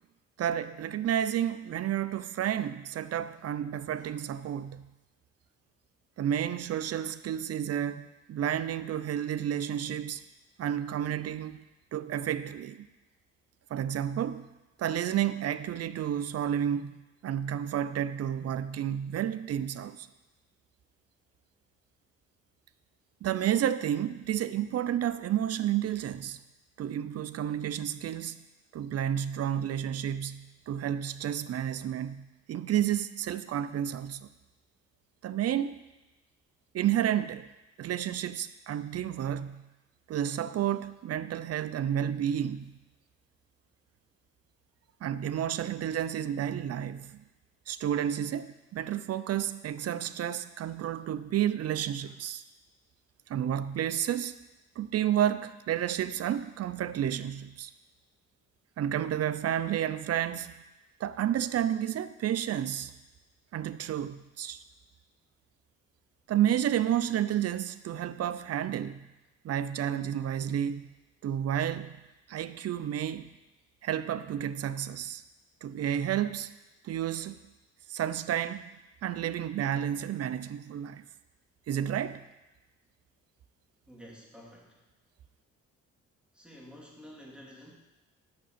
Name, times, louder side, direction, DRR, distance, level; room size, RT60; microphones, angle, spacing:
voice 1, 0.4-4.9 6.2-10.2 10.6-11.6 11.9-12.9 13.7-14.5 14.8-20.1 23.2-26.4 26.8-28.4 28.7-34.3 35.2-35.8 36.7-37.5 37.8-39.7 40.1-42.8 45.0-47.2 47.7-52.4 53.3-54.4 54.8-57.7 58.8-60.6 61.0-62.9 63.5-64.6 66.3-69.1 69.4-70.9 71.2-71.9 72.3-73.3 73.8-75.2 75.6-76.5 76.8-77.4 77.9-78.6 79.0-81.0 81.7-82.2, right 10 dB, 55° right, 0.6 m, -31 dB
voice 2, 83.9-84.8 86.3-87.7, equal, 5° right, 3.0 m, -50 dB
9.6 x 6.2 x 7.3 m
cardioid pair, 90°, 30 cm